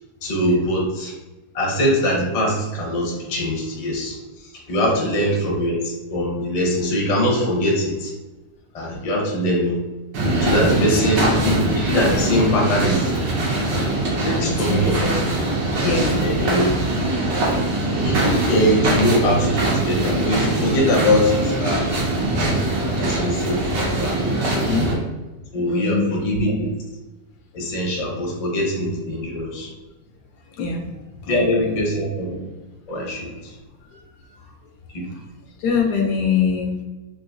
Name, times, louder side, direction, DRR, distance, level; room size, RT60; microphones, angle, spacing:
voice 1, 0.2-1.1 1.5-8.1 8.7-9.8 10.4-13.2 14.4-15.0 15.3-15.5 16.0-16.7 18.0-21.9 22.8-24.8 25.5-26.7 27.5-29.7 31.3-32.3 32.9-33.5 34.9-35.1, equal, 40° left, -3 dB, 0.5 m, -22 dB
voice 2, 4.9-5.3 10.7-10.9 14.2-15.2 15.8-16.2 24.5-24.9 25.7-26.4 30.6-30.9 31.2-31.7 33.9-34.5 35.1-35.2 35.6-36.8, left 5 dB, 75° left, 2 dB, 1.1 m, -25 dB
sound 1, 10.1-24.9, right 1 dB, 90° right, 1.5 m, -22 dB
3.8 x 2.5 x 2.5 m, 1.1 s
omnidirectional pair, 1.9 m